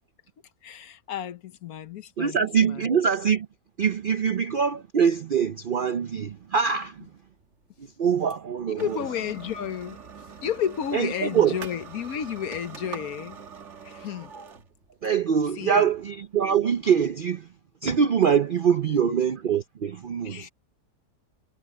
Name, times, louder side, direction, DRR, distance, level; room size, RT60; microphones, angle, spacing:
voice 1, 0.6-2.9 8.7-10.0 10.4-13.4 13.8-14.3 15.6-15.9 18.9-19.1 20.2-20.5, left 9 dB, 65° left, 1.3 m, -32 dB
voice 2, 2.2-3.5 3.8-7.0 8.0-9.0 10.9-11.6 15.0-17.5 17.8-20.5, right 7 dB, 85° right, 0.4 m, -24 dB
sound 1, 6.1-17.3, right 6 dB, 45° right, 1.8 m, -45 dB
omnidirectional pair, 1.8 m